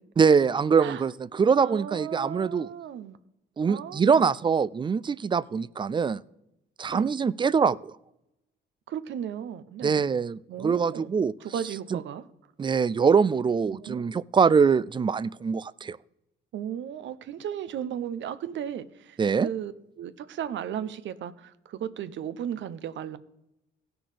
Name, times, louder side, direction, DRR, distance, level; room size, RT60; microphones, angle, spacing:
voice 1, 0.2-2.7 3.6-6.2 6.8-7.9 9.8-11.3 11.9-12.0 12.6-16.0 19.2-19.5, right 6 dB, 25° right, 20 dB, 0.3 m, -23 dB
voice 2, 1.6-3.2 3.7-4.3 6.9-7.1 8.9-10.1 10.5-11.1 11.4-12.2 13.7-14.1 16.5-23.2, right 9 dB, 70° right, 13 dB, 0.8 m, -35 dB
16.5 x 6.1 x 5.0 m, 0.87 s
cardioid pair, 90°, 20 cm